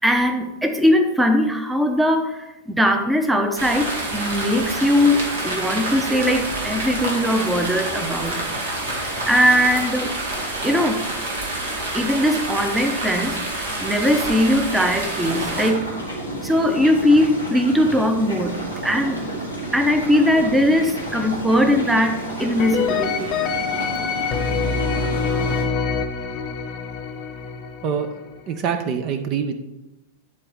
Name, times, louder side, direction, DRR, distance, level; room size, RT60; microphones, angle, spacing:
voice 1, 0.0-8.4 9.0-10.2 10.6-11.0 11.9-15.8 16.4-18.5 18.8-19.2 19.7-23.4, left 1 dB, 5° right, 7 dB, 0.8 m, -20 dB
sound 1, 3.6-15.7, right 2 dB, 65° right, 1.9 m, -27 dB
sound 2, 15.2-25.6, right 1 dB, 90° right, 2.1 m, -31 dB
sound 3, 22.6-28.5, left 5 dB, 40° left, 0.9 m, -25 dB
voice 2, 28.5-29.6, right 7 dB, 40° right, 7 dB, 0.6 m, -24 dB
11.0 x 3.9 x 4.6 m, 1.0 s
figure-of-eight pair, 95°, 0 cm